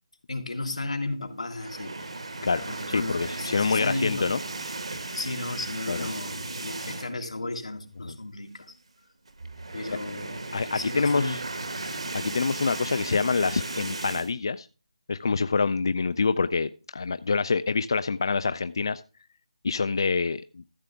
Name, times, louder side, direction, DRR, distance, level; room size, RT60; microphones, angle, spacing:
voice 1, 0.3-2.0 2.7-4.3 5.1-8.8 9.7-11.5, left 2 dB, 90° left, 4 dB, 1.9 m, -34 dB
Dragging On Carpet, 1.5-7.3 7.7-7.9 8.1-8.2 9.3-14.3, right 3 dB, 70° right, 1.6 m, -36 dB
voice 2, 2.4-4.4 5.9-6.1 8.0-8.1 10.5-11.4 12.1-14.7 15.1-19.0 19.6-20.6, left 4 dB, 45° left, 13 dB, 0.3 m, -26 dB
13.5 x 6.8 x 3.4 m, 0.34 s
figure-of-eight pair, 175°, 3 cm